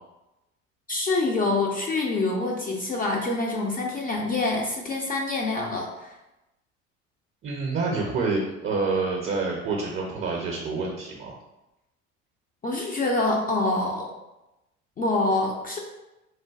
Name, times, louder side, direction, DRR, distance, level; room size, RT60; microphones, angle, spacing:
voice 1, 0.9-6.1 12.6-14.1 15.0-15.8, left 2 dB, 25° left, -1 dB, 0.5 m, -26 dB
voice 2, 7.4-11.4, right 3 dB, 35° right, -1 dB, 0.6 m, -27 dB
3.3 x 2.5 x 2.3 m, 0.97 s
hypercardioid pair, 70°, 37 cm